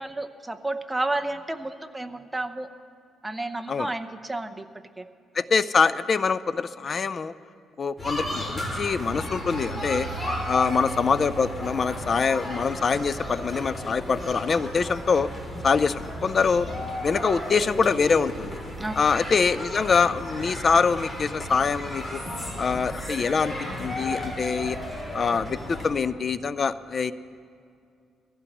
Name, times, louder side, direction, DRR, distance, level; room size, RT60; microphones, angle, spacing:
voice 1, 0.0-2.7 3.2-4.7 5.0-5.1 18.8-18.9, right 2 dB, 10° right, 7 dB, 0.8 m, -31 dB
voice 2, 5.4-7.3 7.8-10.1 10.4-15.3 15.6-16.7 17.0-18.6 18.9-22.2 22.6-23.5 23.8-24.8 25.1-27.1, left 5 dB, 40° left, 15 dB, 0.5 m, -24 dB
sound 1, 8.0-25.9, equal, 20° left, 3.0 m, -34 dB
22.0 x 15.0 x 3.0 m, 2.4 s
cardioid pair, 90°, 0 cm